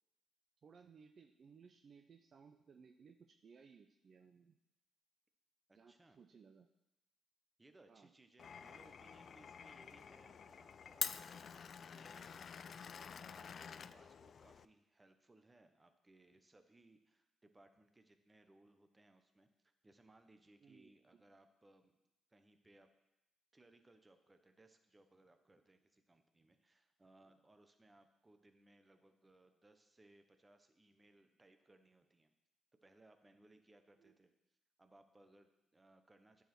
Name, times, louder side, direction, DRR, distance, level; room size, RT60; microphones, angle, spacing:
voice 1, 0.6-4.6 5.7-6.7 7.9-8.1 20.6-21.2 34.0-34.2, right 6 dB, 50° right, 5 dB, 0.6 m, -62 dB
voice 2, 5.7-6.2 7.6-19.5 19.8-22.0 22.3-22.9 23.5-32.3 32.8-34.3 34.8-36.4, right 2 dB, 20° right, 7 dB, 1.0 m, -67 dB
Glass, 8.4-14.7, left 7 dB, 50° left, 0.3 m, -48 dB
10.0 x 4.8 x 6.1 m, 0.93 s
cardioid pair, 90°, 0 cm